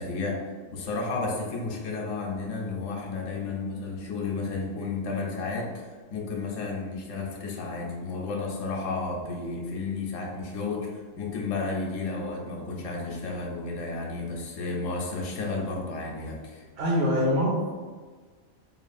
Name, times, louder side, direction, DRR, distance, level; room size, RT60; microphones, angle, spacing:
voice 1, 0.0-16.7, left 3 dB, 80° left, -1 dB, 0.9 m, -32 dB
voice 2, 16.8-17.7, equal, 60° right, -3 dB, 0.8 m, -24 dB
2.9 x 2.4 x 2.4 m, 1.4 s
omnidirectional pair, 1.4 m